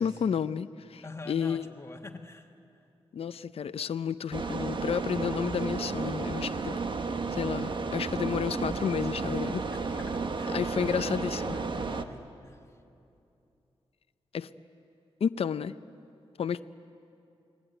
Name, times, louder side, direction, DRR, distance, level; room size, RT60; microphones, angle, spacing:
voice 1, 0.0-1.6 3.1-9.6 10.5-11.6 14.3-14.5 15.2-15.7 16.4-16.6, left 7 dB, 70° left, 12 dB, 0.6 m, -31 dB
voice 2, 1.0-2.8 9.7-12.6, left 3 dB, 25° left, 3 dB, 1.6 m, -46 dB
sound 1, 4.3-12.0, right 4 dB, 50° right, 1.3 m, -32 dB
30.0 x 21.0 x 9.1 m, 2.7 s
wide cardioid pair, 120°, 11 cm